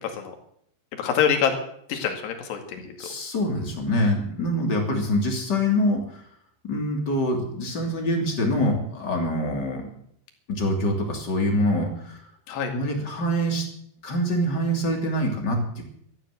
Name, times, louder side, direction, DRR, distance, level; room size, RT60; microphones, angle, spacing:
voice 1, 0.0-0.3 1.0-1.5 1.9-3.0 12.5-12.7, left 8 dB, 65° left, 4 dB, 4.2 m, -25 dB
voice 2, 3.0-6.2 6.6-9.9 10.5-12.2 12.7-13.6 14.0-15.8, equal, 25° left, 1 dB, 2.9 m, -25 dB
13.5 x 12.5 x 7.9 m, 0.68 s
omnidirectional pair, 5.3 m